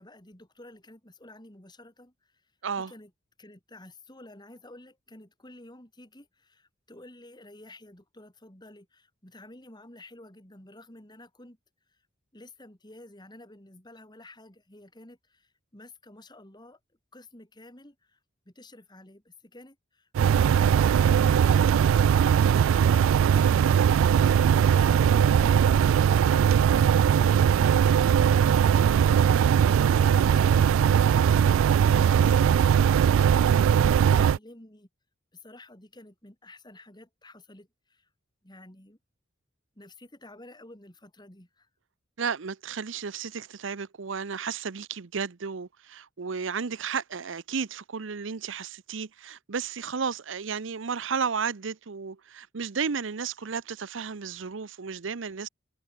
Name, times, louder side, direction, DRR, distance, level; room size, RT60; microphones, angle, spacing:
voice 1, 0.0-2.4 2.8-3.1 3.4-11.6 11.9-12.0 12.3-16.8 17.1-18.2 18.5-24.2 24.6-26.8 27.1-33.3 34.0-34.9 35.3-38.1 38.4-39.0 39.8-41.7, left 1 dB, 20° left, 3.6 m, -50 dB
sound 1, 20.2-34.4, right 8 dB, 90° right, 0.3 m, -20 dB
voice 2, 31.9-32.4 33.7-34.3 42.2-55.5, right 6 dB, 70° right, 0.7 m, -33 dB
head